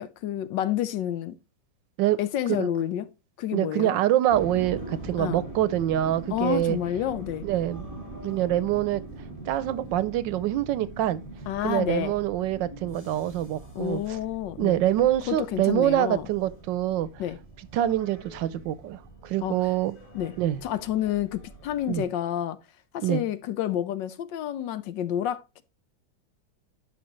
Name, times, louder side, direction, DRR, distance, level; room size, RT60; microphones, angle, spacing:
voice 1, 0.0-1.4 2.2-3.1 3.4-4.0 5.2-5.4 6.3-7.5 11.5-12.1 13.7-14.8 15.3-16.3 17.2-17.4 19.4-19.6 20.1-20.4 20.6-22.6 22.9-25.6, left 11 dB, 75° left, 1.3 m, -29 dB
voice 2, 3.5-6.8 7.4-7.8 8.2-9.0 9.5-11.2 11.6-14.0 14.6-17.1 17.7-19.9 20.4-20.6 21.9-22.1 23.0-23.2, right 13 dB, 75° right, 1.3 m, -25 dB
sound 1, 4.3-22.1, right 2 dB, 20° left, 1.9 m, -42 dB
11.5 x 5.3 x 3.0 m
omnidirectional pair, 2.1 m